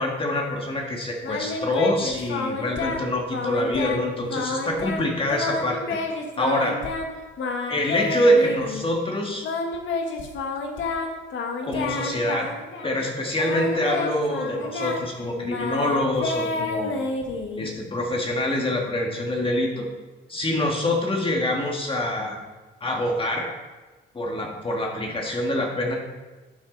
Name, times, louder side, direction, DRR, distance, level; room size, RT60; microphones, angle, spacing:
voice 1, 0.0-6.0 6.4-6.8 7.7-9.5 11.6-12.5 12.8-17.0 17.6-19.9 20.3-22.4 22.8-23.5 24.1-26.0, left 1 dB, 25° left, 0 dB, 1.8 m, -25 dB
Singing, 1.2-3.0 3.3-4.0 4.3-7.1 7.4-8.8 9.4-13.0 13.3-17.8, left 3 dB, 75° left, 1.5 m, -29 dB
12.0 x 7.5 x 4.0 m, 1.3 s
cardioid pair, 90°, 20 cm